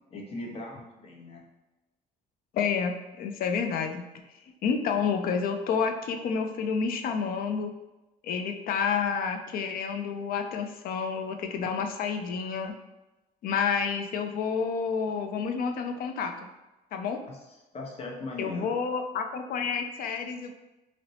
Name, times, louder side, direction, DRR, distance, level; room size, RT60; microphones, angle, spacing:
voice 1, 0.1-1.4 17.3-17.4 17.7-18.8, left 2 dB, 35° left, -1 dB, 0.8 m, -39 dB
voice 2, 2.5-4.1 4.6-7.7 8.2-12.7 13.4-16.3 16.9-17.2 18.4-20.5, left 6 dB, 60° left, 5 dB, 0.4 m, -29 dB
4.2 x 2.0 x 2.7 m, 1.0 s
cardioid pair, 110°, 17 cm